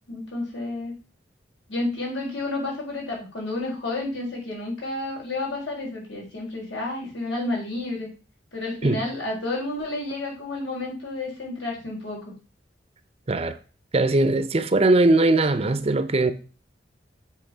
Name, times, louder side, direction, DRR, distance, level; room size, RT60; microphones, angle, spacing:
voice 1, 0.1-0.9 1.7-8.1 8.5-12.2, left 2 dB, 85° left, 4.8 m, -30 dB
voice 2, 13.9-16.3, right 2 dB, 35° right, 0.6 m, -20 dB
7.8 x 4.0 x 6.1 m
head